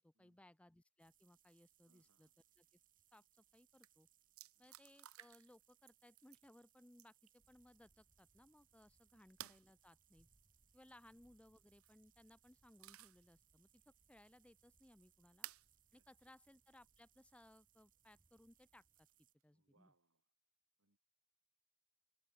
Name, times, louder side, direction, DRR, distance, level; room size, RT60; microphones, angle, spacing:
voice 1, 0.0-2.3 2.6-2.8 3.1-3.2 3.5-4.1 4.6-10.3 10.7-15.5 15.9-19.1 19.4-19.9, left 1 dB, 5° left, 0.4 m, -66 dB
sound 1, 1.0-19.3, right 12 dB, 40° right, 5.3 m, -76 dB
voice 2, 1.8-2.3 4.5-4.7 9.1-9.2 15.9-16.3 19.5-20.2 20.8-21.0, right 2 dB, 70° right, 3.4 m, -80 dB
sound 2, 3.4-3.5 3.7-3.9 4.4-5.6 5.9-6.4 6.9-7.3 9.4-9.7 11.6-12.0 12.4-13.3 13.8-13.9 15.4-15.7 16.8-16.9 19.0-19.4, right 13 dB, 85° right, 0.9 m, -55 dB
sound 3, 7.4-19.1, equal, 10° right, 2.2 m, -80 dB
open air
head